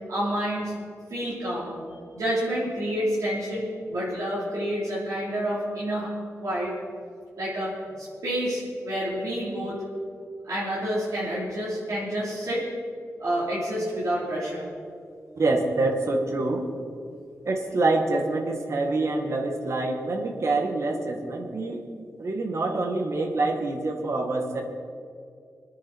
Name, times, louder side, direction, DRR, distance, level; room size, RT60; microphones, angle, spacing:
voice 1, 0.1-0.7 1.1-1.8 2.1-6.1 6.4-6.7 7.4-9.8 10.4-12.6 13.2-14.6, equal, 75° right, -9 dB, 4.5 m, -29 dB
voice 2, 15.4-16.6 17.5-21.8 22.2-24.6, right 2 dB, 60° right, 3 dB, 1.9 m, -26 dB
23.0 x 10.0 x 4.7 m, 2.3 s
wide cardioid pair, 95°, 6 cm